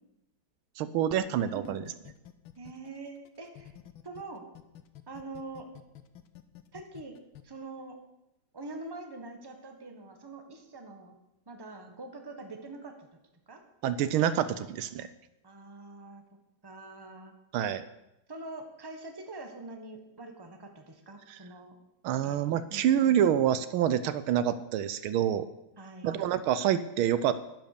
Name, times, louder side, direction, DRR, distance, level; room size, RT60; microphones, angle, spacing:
voice 1, 0.8-1.8 13.8-15.1 17.5-17.8 21.3-21.4 22.0-25.5 26.0-27.3, right 10 dB, 80° right, 14 dB, 1.5 m, -27 dB
sound 1, 1.6-4.2 4.6-7.4, left 12 dB, 75° left, 1.7 m, -50 dB
voice 2, 2.5-3.7 4.0-4.4 5.1-5.7 6.7-7.1 7.4-8.0 8.5-11.2 11.5-13.1 13.5-13.6 15.4-16.2 16.6-17.3 18.3-21.7 22.2-22.4 22.7-23.1 25.8-26.1, right 2 dB, 15° right, 5 dB, 1.2 m, -44 dB
11.0 x 10.5 x 6.8 m, 0.88 s
omnidirectional pair, 2.3 m